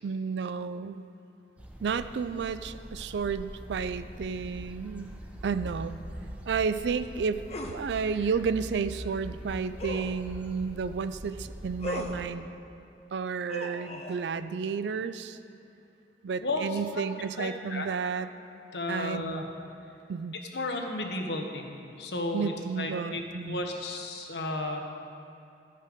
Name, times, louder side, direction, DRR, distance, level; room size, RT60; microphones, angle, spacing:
voice 1, 0.0-1.0 1.8-5.2 5.4-6.0 6.5-12.5 13.1-15.4 16.2-18.3 18.9-19.3 20.1-20.4 22.3-23.6, right 5 dB, 75° right, 12 dB, 0.4 m, -32 dB
sound 1, 1.6-12.3, equal, 10° right, 0.7 m, -43 dB
sound 2, 7.5-7.8 9.8-10.2 11.8-12.2 13.5-14.2, left 1 dB, 35° left, 0.7 m, -36 dB
voice 2, 17.3-17.9 18.7-19.4 20.5-21.7 22.0-24.8, left 2 dB, 70° left, 2 dB, 1.0 m, -33 dB
13.0 x 5.5 x 5.0 m, 2.6 s
head